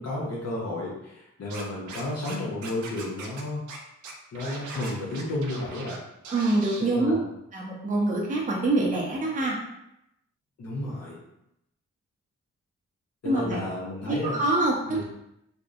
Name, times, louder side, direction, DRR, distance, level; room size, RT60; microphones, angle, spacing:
voice 1, 0.0-3.6 4.3-6.0 6.8-7.2 10.6-11.2 13.2-14.4 14.9-15.0, left 1 dB, 55° left, -7 dB, 0.7 m, -32 dB
Scratching (performance technique), 1.5-2.3 2.6-3.4 3.7-3.8 4.0-6.0 6.2-6.8, right 3 dB, 75° right, 0.5 m, -40 dB
voice 2, 6.3-7.2 7.5-9.6 13.2-13.6 14.1-15.0, right 2 dB, 25° right, -2 dB, 0.6 m, -25 dB
2.5 x 2.0 x 2.4 m, 0.83 s
supercardioid pair, 45°, 30 cm